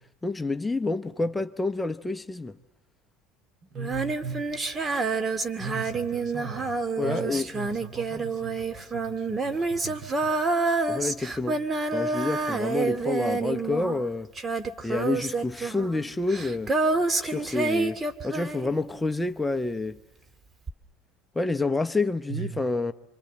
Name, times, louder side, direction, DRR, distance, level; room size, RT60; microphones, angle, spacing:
voice 1, 0.2-2.6 7.0-7.5 10.9-11.6 11.9-14.3 14.8-16.7 17.2-20.0 21.3-22.9, left 3 dB, 10° left, 0.9 m, -28 dB
voice 2, 3.6-4.5 5.6-6.8 7.0-10.3 22.3-22.7, right 5 dB, 50° right, 4.0 m, -38 dB
Female singing, 3.8-19.1 20.7-20.8, right 3 dB, 25° right, 2.0 m, -28 dB
26.5 x 26.0 x 7.5 m
hypercardioid pair, 85°, 0 cm